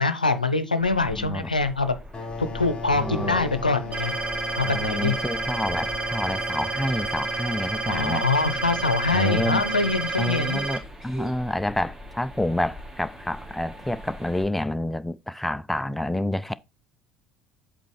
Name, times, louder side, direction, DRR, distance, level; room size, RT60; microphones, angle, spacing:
voice 1, 0.0-1.9 2.4-4.1 4.6-5.1 7.9-10.6, left 3 dB, 90° left, 0.7 m, -24 dB
sound 1, 0.8-14.5, equal, 10° right, 2.0 m, -41 dB
voice 2, 1.1-1.5 2.9-3.4 4.6-8.3 9.1-9.6 10.2-16.5, left 1 dB, 5° left, 0.4 m, -28 dB
sound 2, 2.1-10.5, left 3 dB, 20° left, 1.9 m, -38 dB
sound 3, 3.9-10.8, right 3 dB, 30° right, 2.5 m, -30 dB
8.0 x 4.2 x 4.5 m
figure-of-eight pair, 65°, 4 cm